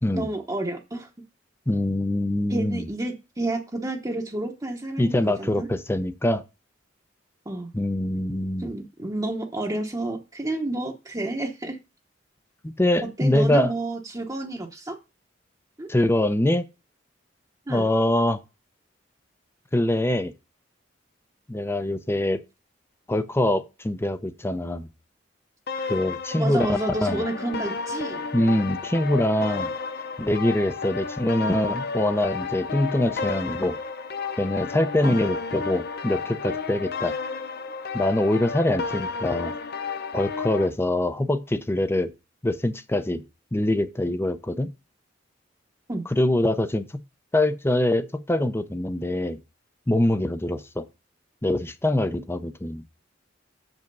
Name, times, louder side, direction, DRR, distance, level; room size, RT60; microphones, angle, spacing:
voice 1, 0.1-1.1 2.5-5.7 7.5-7.7 8.6-11.8 13.2-15.0 15.8-15.9 17.7-17.9 25.9-26.0 26.4-28.2 35.0-35.2 45.9-46.0, right 2 dB, 20° right, 1.0 m, -30 dB
voice 2, 1.7-2.9 5.0-6.4 7.7-8.7 12.6-13.7 15.9-16.6 17.7-18.4 19.7-20.3 21.5-22.4 23.1-24.9 25.9-27.2 28.3-29.7 30.2-33.8 34.4-37.1 37.9-39.5 40.1-42.1 42.4-43.2 43.5-44.7 46.1-46.9 47.3-49.4 49.9-50.9 51.4-52.8, left 1 dB, 15° left, 0.6 m, -24 dB
sound 1, 25.7-40.7, left 5 dB, 55° left, 0.7 m, -32 dB
7.1 x 5.4 x 5.3 m
head